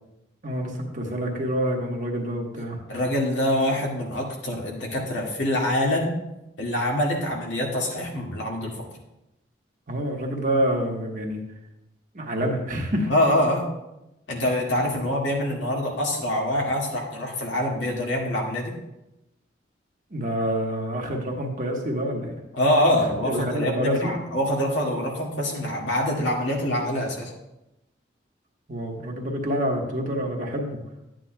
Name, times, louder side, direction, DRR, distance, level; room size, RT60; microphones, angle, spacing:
voice 1, 0.4-2.8 9.9-11.4 12.1-13.1 15.0-15.1 20.1-22.4 23.2-24.2 28.7-30.8, equal, 45° right, 0 dB, 1.3 m, -27 dB
voice 2, 2.9-6.2 6.6-8.8 13.1-13.7 14.3-18.7 22.5-27.3, left 1 dB, 80° left, -2 dB, 2.1 m, -25 dB
12.0 x 8.9 x 2.3 m, 0.92 s
head